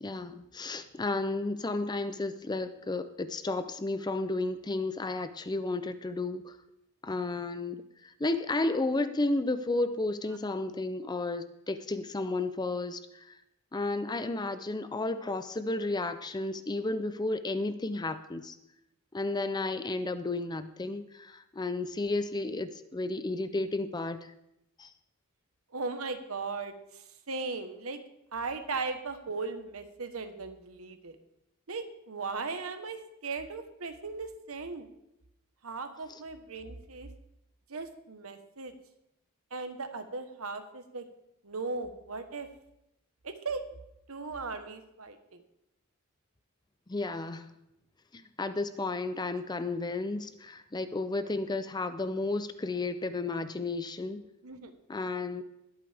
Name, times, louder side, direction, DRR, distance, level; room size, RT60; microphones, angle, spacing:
voice 1, 0.0-6.6 7.0-13.4 13.7-18.5 19.1-24.3 24.8-24.9 36.1-36.2 46.9-47.5 48.1-54.2 54.9-55.4, left 2 dB, 20° left, 11 dB, 0.5 m, -32 dB
voice 2, 25.7-28.0 28.3-31.2 31.7-34.9 35.6-37.1 37.7-38.7 39.5-41.0 41.4-42.5 43.2-43.6 44.1-45.4 54.4-54.7, right 4 dB, 75° right, 8 dB, 1.2 m, -37 dB
21.0 x 8.6 x 3.5 m, 0.83 s
head